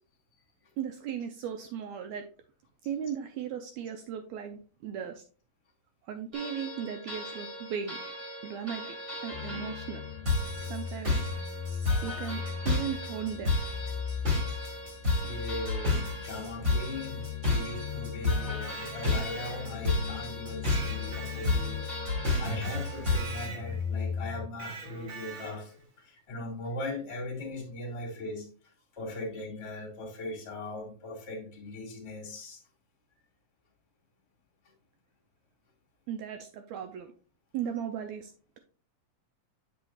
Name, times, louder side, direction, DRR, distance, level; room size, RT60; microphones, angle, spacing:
voice 1, 0.8-2.3 2.8-5.2 6.1-8.0 8.4-9.0 9.2-10.0 10.7-11.2 12.0-13.6 36.1-37.1 37.5-38.3, right 8 dB, 85° right, 6 dB, 1.6 m, -36 dB
sound 1, 6.3-23.5, left 2 dB, 25° right, 2.3 m, -32 dB
sound 2, 9.3-24.5, left 8 dB, 85° left, 2.2 m, -39 dB
voice 2, 15.2-21.9 22.4-25.7 26.0-28.5 28.9-32.6, left 2 dB, 25° left, 0 dB, 1.6 m, -39 dB
Electric guitar, 18.4-20.0 20.7-22.0 22.6-23.9 24.6-25.8, right 3 dB, 55° right, 1.4 m, -44 dB
7.7 x 6.9 x 2.4 m, 0.39 s
omnidirectional pair, 3.8 m